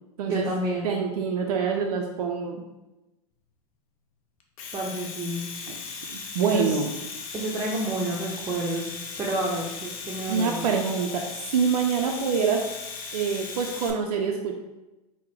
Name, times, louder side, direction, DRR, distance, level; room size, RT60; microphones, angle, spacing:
voice 1, 0.2-0.9 4.7-5.4 6.4-6.8 7.3-10.7, right 1 dB, 20° right, -4 dB, 0.6 m, -29 dB
voice 2, 0.8-2.6 5.7-5.8 6.1-6.9 10.3-11.2 11.5-12.6 13.1-14.5, right 6 dB, 80° right, 1 dB, 0.4 m, -25 dB
Domestic sounds home sounds, 4.4-13.9, left 5 dB, 65° left, 0.6 m, -37 dB
3.7 x 2.1 x 3.1 m, 1.0 s
hypercardioid pair, 95°, 19 cm